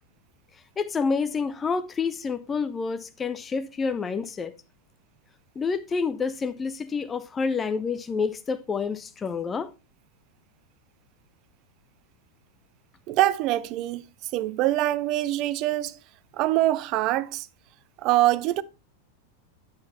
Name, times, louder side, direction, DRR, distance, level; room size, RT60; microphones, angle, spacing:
voice 1, 0.8-4.5 5.6-9.7, left 5 dB, 20° left, 0.5 m, -28 dB
voice 2, 13.1-14.0 14.3-16.0 16.4-17.5 18.0-18.6, right 15 dB, 40° right, 0.6 m, -24 dB
9.3 x 8.8 x 2.7 m
figure-of-eight pair, 90°, 0 cm